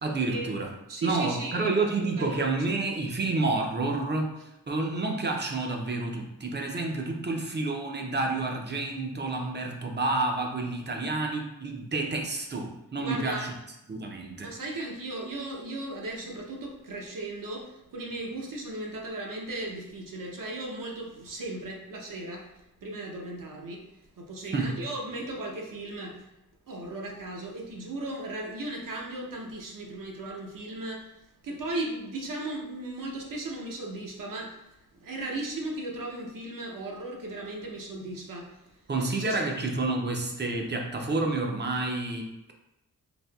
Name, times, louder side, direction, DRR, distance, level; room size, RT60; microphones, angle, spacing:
voice 1, 0.0-0.7 1.0-4.3 4.7-13.5 13.9-14.5 24.5-24.9 38.9-42.5, right 3 dB, 30° right, 2 dB, 0.5 m, -29 dB
voice 2, 0.9-1.7 2.2-2.4 13.0-13.5 14.4-22.4 22.8-23.8 24.2-26.1 26.7-31.1 31.4-34.5 34.9-38.4 39.0-39.4, right 2 dB, 60° right, 0 dB, 0.7 m, -36 dB
4.2 x 2.7 x 2.3 m, 0.90 s
wide cardioid pair, 115°, 36 cm